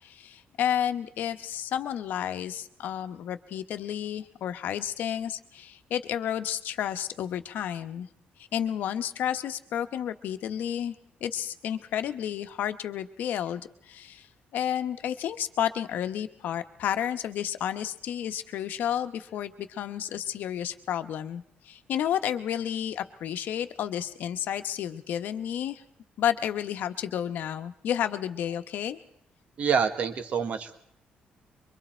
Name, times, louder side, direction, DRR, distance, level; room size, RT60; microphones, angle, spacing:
voice 1, 0.0-8.1 8.5-10.9 11.2-14.3 14.5-25.8 26.2-29.0, left 10 dB, 70° left, 9 dB, 1.1 m, -31 dB
voice 2, 29.6-30.8, right 6 dB, 45° right, 9 dB, 1.4 m, -27 dB
24.5 x 24.0 x 4.4 m, 0.70 s
cardioid pair, 170°, 3 cm